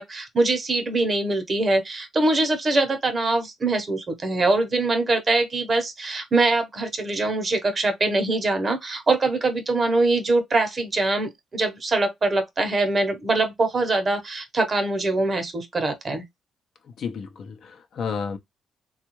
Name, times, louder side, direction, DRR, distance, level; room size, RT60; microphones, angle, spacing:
voice 1, 0.0-16.2, right 2 dB, 35° right, 0.9 m, -23 dB
voice 2, 17.0-18.4, left 6 dB, 65° left, 0.6 m, -31 dB
3.4 x 2.3 x 3.0 m
cardioid pair, 90°, 0 cm